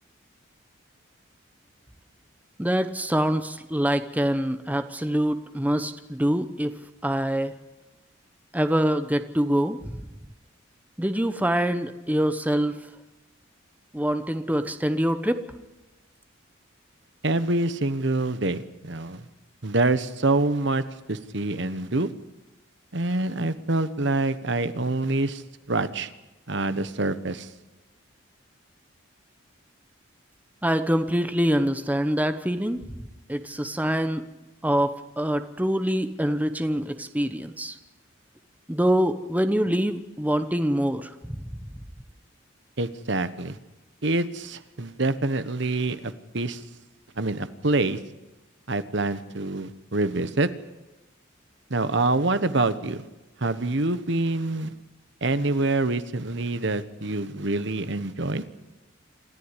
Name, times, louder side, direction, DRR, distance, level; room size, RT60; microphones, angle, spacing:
voice 1, 2.6-7.5 8.5-10.0 11.0-12.9 13.9-15.4 30.6-32.8 33.3-34.2 34.6-37.7 38.7-41.4, equal, 10° right, 9 dB, 1.0 m, -25 dB
voice 2, 17.2-19.3 19.6-20.8 21.1-22.1 22.9-25.4 25.7-26.1 26.5-27.5 42.8-43.6 44.0-46.6 47.2-48.0 48.7-50.5 51.7-53.0 53.4-54.7 55.2-58.4, right 2 dB, 60° right, 13 dB, 1.2 m, -26 dB
27.0 x 14.0 x 9.9 m, 1.0 s
head